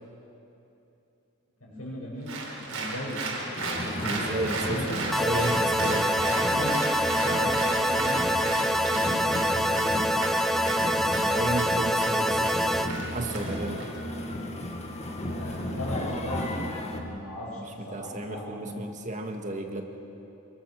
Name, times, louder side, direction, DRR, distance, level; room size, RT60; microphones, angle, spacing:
voice 1, 1.6-3.2 4.1-5.5 6.2-6.8 7.2-9.9 15.2-18.8, left 1 dB, 90° left, -9 dB, 7.2 m, -37 dB
Applause, 2.3-13.9, right 3 dB, 80° right, 4.7 m, -35 dB
sound 1, 3.6-17.0, left 1 dB, 30° left, 2.0 m, -34 dB
voice 2, 4.0-6.1 11.2-12.5 13.1-13.8 17.6-19.8, right 1 dB, 35° right, 4 dB, 1.9 m, -33 dB
sound 2, 5.1-12.9, equal, ahead, 0.6 m, -26 dB
27.0 x 22.5 x 6.6 m, 2.9 s
head